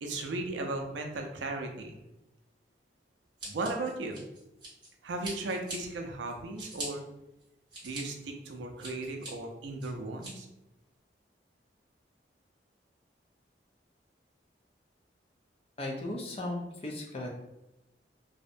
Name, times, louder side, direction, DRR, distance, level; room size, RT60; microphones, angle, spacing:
voice 1, 0.0-2.0 3.4-4.2 5.0-7.0 7.8-10.5, right 2 dB, 85° right, 3 dB, 0.4 m, -36 dB
Scissors, 3.4-4.9 5.2-5.8 6.3-6.9 7.4-8.0 8.5-9.3 9.8-10.3, right 2 dB, 25° right, 0.9 m, -42 dB
voice 2, 15.8-17.3, left 1 dB, 30° left, 0 dB, 0.4 m, -36 dB
2.7 x 2.1 x 2.5 m, 0.93 s
head